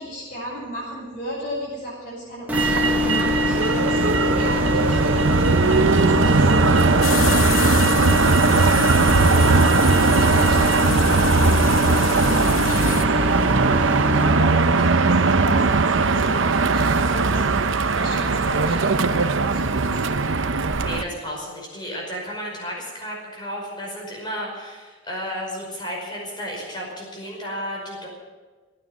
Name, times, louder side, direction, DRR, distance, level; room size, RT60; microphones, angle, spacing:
voice 1, 0.0-8.2 9.0-17.6 17.9-20.5, equal, 40° left, -8 dB, 7.2 m, -35 dB
sound 1, 2.5-14.3, left 4 dB, 10° right, 1.3 m, -27 dB
Motor vehicle (road), 2.5-21.0, right 3 dB, 70° right, 0.8 m, -19 dB
sound 2, 7.0-13.0, left 6 dB, 80° left, 0.9 m, -29 dB
voice 2, 20.8-28.1, equal, 20° left, -1 dB, 5.3 m, -33 dB
18.0 x 9.9 x 8.0 m, 1.4 s
head